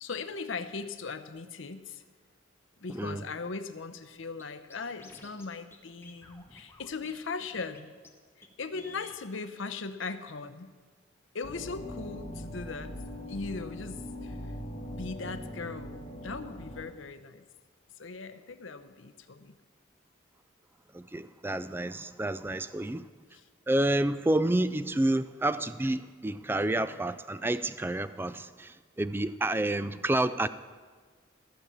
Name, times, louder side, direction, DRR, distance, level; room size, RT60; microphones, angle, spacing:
voice 1, 0.0-2.0 2.8-7.9 8.6-10.7 11.3-12.9 13.3-14.4 14.9-15.9 16.2-17.4 18.0-19.5 23.3-23.4 29.8-30.0, left 4 dB, 75° left, 10 dB, 0.7 m, -39 dB
voice 2, 2.9-3.2 20.9-23.1 23.7-30.5, right 1 dB, 10° right, 13 dB, 0.3 m, -29 dB
Scratching (performance technique), 4.4-4.5 4.7-5.5 5.7-5.8 6.0-7.1 7.4-8.1 8.4-8.5 8.7-9.2, left 2 dB, 10° left, 1.1 m, -52 dB
sound 1, 11.4-16.8, left 1 dB, 35° left, 1.8 m, -41 dB
14.5 x 6.9 x 7.3 m, 1.5 s
head